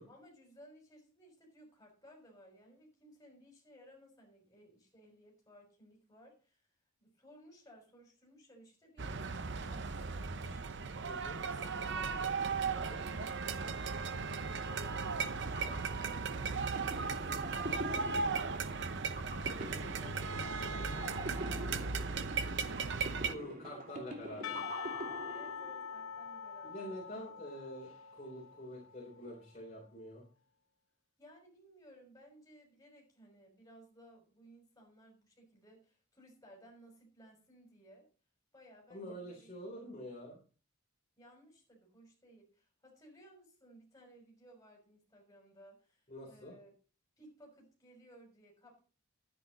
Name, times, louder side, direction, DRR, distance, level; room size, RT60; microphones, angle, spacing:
voice 1, 0.1-6.7 7.0-10.6 11.4-12.2 20.0-23.0 24.3-24.7 25.3-26.9 31.2-38.1 38.5-39.5 41.2-46.7 47.2-48.8, equal, 15° left, 0 dB, 5.7 m, -59 dB
sound 1, 9.0-23.3, right 5 dB, 60° right, 0.8 m, -37 dB
voice 2, 11.1-11.4 12.9-13.0 19.6-19.9 23.3-24.6 26.6-30.2 38.9-40.4 46.1-46.6, equal, 35° left, -4 dB, 3.7 m, -46 dB
sound 2, 15.3-26.1, equal, 40° right, 2.7 m, -45 dB
Percussion / Church bell, 24.4-29.2, left 7 dB, 85° left, 1.1 m, -44 dB
11.5 x 9.8 x 4.1 m, 0.38 s
head